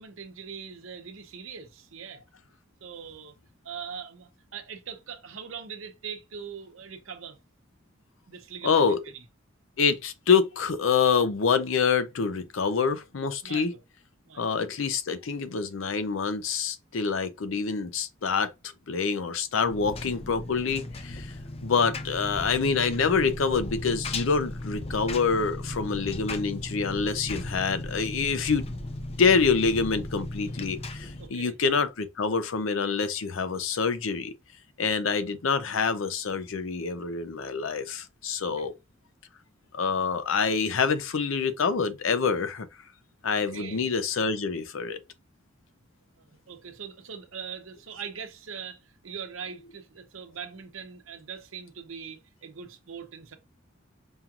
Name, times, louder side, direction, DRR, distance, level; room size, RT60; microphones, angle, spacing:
voice 1, 0.0-2.2 2.8-3.3 3.6-7.4 8.3-8.8 9.1-9.2 13.4-13.8 14.2-14.6 31.2-31.5 38.4-38.7 43.3-43.9 46.2-53.3, right 6 dB, 75° right, 0.8 m, -41 dB
voice 2, 8.6-9.0 9.8-13.7 14.4-18.5 18.9-21.3 21.6-28.7 29.2-34.3 34.8-38.7 39.7-42.7 43.2-45.0, left 5 dB, 70° left, 0.6 m, -26 dB
Engine, 19.7-31.3, left 1 dB, 30° left, 0.5 m, -36 dB
5.4 x 2.9 x 2.4 m
head